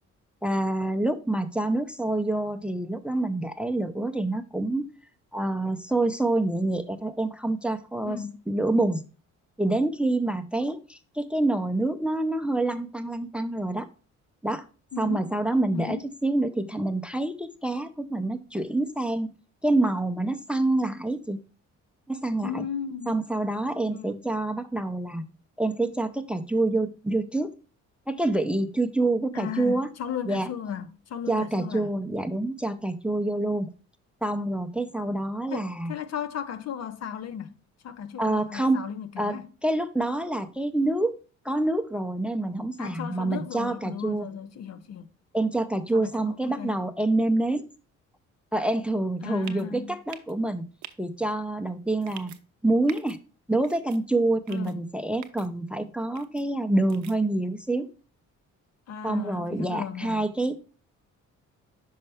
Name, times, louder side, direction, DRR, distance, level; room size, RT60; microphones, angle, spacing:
voice 1, 0.4-4.8 5.3-8.2 8.5-9.0 9.6-13.9 14.4-14.6 15.0-19.3 19.6-21.4 22.1-22.6 23.1-25.2 25.6-27.5 28.1-29.9 30.3-30.5 31.3-33.7 34.2-35.9 38.2-38.8 39.2-41.2 41.4-44.3 45.3-47.6 48.5-50.6 51.0-52.3 52.6-53.2 53.5-57.9 59.0-60.6, right 2 dB, 5° right, 0.5 m, -27 dB
voice 2, 8.0-8.4 14.9-15.3 15.7-16.1 22.4-23.2 23.9-24.2 29.3-31.9 35.5-37.5 37.8-39.5 42.8-45.1 45.9-46.8 49.2-50.0 54.5-54.8 58.9-60.2, left 8 dB, 60° left, 0.7 m, -35 dB
sound 1, 49.4-49.7 50.1-50.3 50.8-50.9 52.0-52.4 52.9-53.2 53.6-54.0 54.5-54.7 55.2-55.5 56.2-56.4 56.9-57.2, right 11 dB, 70° right, 0.7 m, -44 dB
5.5 x 5.4 x 3.4 m
cardioid pair, 90°, 30 cm